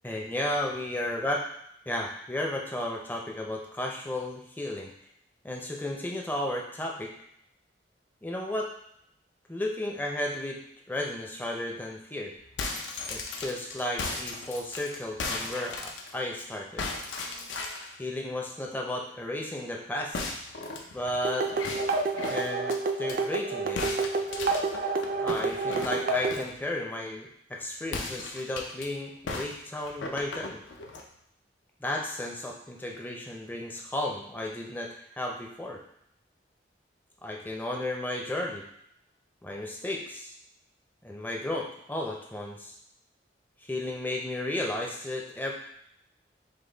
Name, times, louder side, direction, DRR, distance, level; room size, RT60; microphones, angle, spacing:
voice 1, 0.0-1.4 1.9-4.9 5.4-7.1 8.2-8.7 9.5-10.6 10.9-12.3 13.1-16.9 18.0-20.2 20.9-21.5 22.3-23.8 25.2-30.6 31.8-35.8 37.2-38.7 39.4-40.3 41.0-42.7 43.6-45.5, left 1 dB, 10° left, 0 dB, 0.5 m, -33 dB
sound 1, 12.4-16.4 16.8-17.9 20.1-23.2 23.8-26.6 27.8-28.9 29.3-31.1, left 3 dB, 85° left, 0.6 m, -36 dB
sound 2, 21.2-26.4, right 3 dB, 50° right, 0.3 m, -29 dB
5.3 x 2.1 x 3.8 m, 0.74 s
head